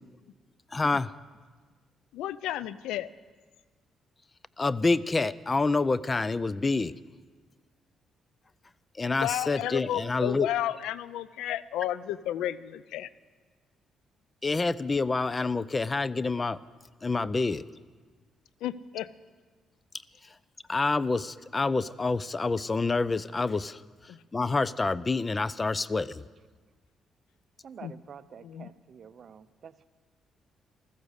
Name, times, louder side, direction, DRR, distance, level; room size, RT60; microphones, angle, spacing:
voice 1, 0.7-1.1 4.6-6.9 9.0-10.5 14.4-16.6 17.0-17.6 20.7-23.8 24.3-26.2, left 3 dB, 25° left, 19 dB, 0.4 m, -27 dB
voice 2, 2.1-3.1 9.2-13.1 18.6-19.1 24.1-24.2 27.8-27.9 28.4-28.7, left 12 dB, 90° left, 18 dB, 0.4 m, -32 dB
voice 3, 27.6-29.8, right 7 dB, 55° right, 14 dB, 0.6 m, -48 dB
15.0 x 14.0 x 6.5 m, 1.4 s
cardioid pair, 90°, 0 cm